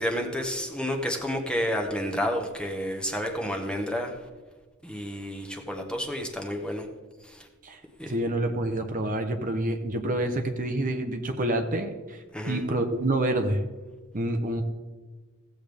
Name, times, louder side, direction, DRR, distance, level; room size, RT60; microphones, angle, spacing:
voice 1, 0.0-4.2 4.8-6.9 7.2-7.5 8.0-8.1 12.3-12.6, equal, 5° left, 2 dB, 1.1 m, -30 dB
voice 2, 7.6-13.6 14.1-14.6, right 1 dB, 40° right, 6 dB, 0.8 m, -28 dB
16.0 x 7.9 x 3.4 m, 1.3 s
head